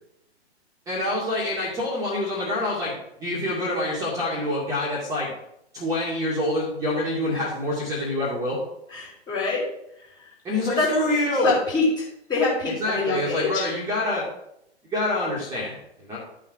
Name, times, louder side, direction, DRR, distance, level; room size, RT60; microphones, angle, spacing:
voice 1, 0.9-2.9 3.2-5.3 5.7-8.6 10.4-11.6 12.6-14.2 14.9-16.2, left 1 dB, 10° right, -5 dB, 2.3 m, -26 dB
voice 2, 8.9-9.6 10.8-11.1 11.4-13.7, left 3 dB, 10° left, -5 dB, 3.1 m, -25 dB
12.0 x 5.8 x 4.7 m, 0.77 s
figure-of-eight pair, 120°, 33 cm